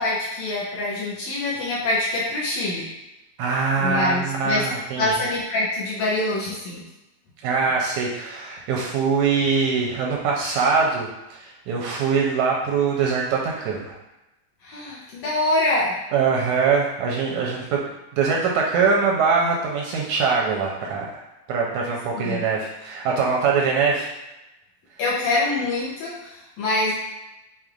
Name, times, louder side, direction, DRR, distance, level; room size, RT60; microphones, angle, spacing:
voice 1, 0.0-2.9 3.8-4.6 5.0-6.8 14.6-15.9 22.2-22.4 25.0-26.9, left 2 dB, 70° left, -6 dB, 1.8 m, -25 dB
voice 2, 3.4-5.1 7.4-14.0 16.1-17.8 18.1-21.2 21.5-24.1, right 5 dB, 80° right, -2 dB, 1.8 m, -23 dB
6.5 x 3.0 x 2.5 m, 0.95 s
omnidirectional pair, 3.6 m